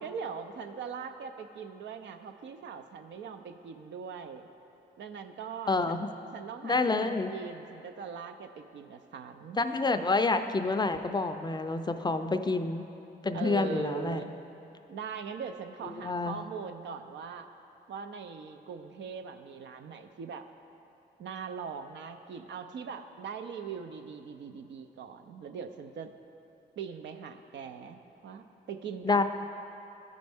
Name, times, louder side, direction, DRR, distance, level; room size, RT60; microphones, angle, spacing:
voice 1, 0.0-4.5 5.0-6.0 6.3-9.6 13.3-14.3 14.9-17.5 17.9-20.5 21.2-26.1 26.8-29.2, right 6 dB, 80° right, 7 dB, 0.5 m, -41 dB
voice 2, 5.7-6.1 6.6-7.3 9.6-12.9 13.2-14.2 16.0-16.4 29.0-29.2, left 3 dB, 25° left, 8 dB, 0.4 m, -28 dB
13.0 x 5.2 x 3.4 m, 2.9 s
cardioid pair, 75°, 18 cm